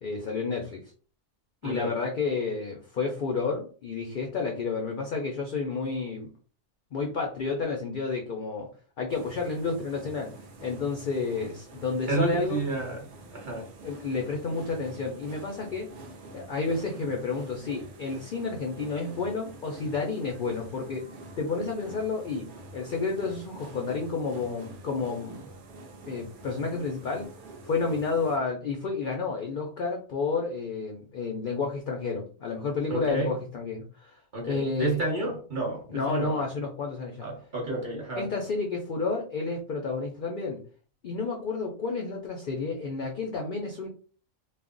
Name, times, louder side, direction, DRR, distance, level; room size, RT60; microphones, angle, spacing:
voice 1, 0.0-0.8 1.6-6.3 6.9-8.7 9.0-10.4 10.6-12.6 13.8-15.9 16.3-21.0 21.4-25.5 26.1-27.3 27.6-34.2 34.5-35.0 35.9-37.3 38.2-40.6 41.0-43.9, left 4 dB, 65° left, 1 dB, 0.5 m, -31 dB
voice 2, 1.6-1.9 12.1-13.0 13.3-13.7 32.9-33.4 34.3-36.4 37.2-38.3, right 3 dB, 40° right, -1 dB, 0.9 m, -30 dB
sound 1, 9.1-28.4, right 2 dB, 60° right, 0.5 m, -47 dB
2.4 x 2.0 x 3.6 m, 0.40 s
omnidirectional pair, 1.4 m